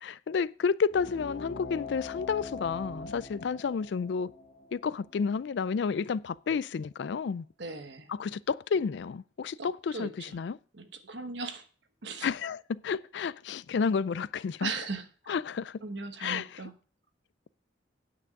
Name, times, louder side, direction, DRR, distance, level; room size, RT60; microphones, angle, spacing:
voice 1, 0.0-4.3 4.7-7.5 8.1-10.6 12.2-14.7 15.3-15.8 16.2-16.6, left 5 dB, 60° left, 0.3 m, -31 dB
sound 1, 0.9-6.0, left 4 dB, 45° left, 2.0 m, -43 dB
voice 2, 7.6-8.1 9.6-10.4 10.7-11.6 12.0-12.3 14.6-15.0 15.8-16.7, right 4 dB, 65° right, 1.2 m, -38 dB
9.3 x 6.0 x 6.4 m
head